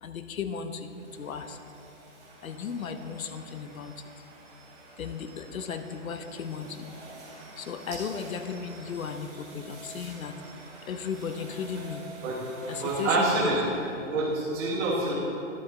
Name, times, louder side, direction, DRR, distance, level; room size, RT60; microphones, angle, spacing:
voice 1, 0.0-1.6 2.4-3.9 5.0-6.8 7.6-10.3 10.9-12.0 12.7-13.5, left 6 dB, 80° left, 8 dB, 0.8 m, -35 dB
sound 1, 0.8-14.0, right 2 dB, 30° right, 1.9 m, -48 dB
voice 2, 12.8-13.6 14.1-15.1, right 2 dB, 10° right, -9 dB, 1.3 m, -26 dB
11.0 x 7.8 x 3.8 m, 2.9 s
hypercardioid pair, 175°, 41 cm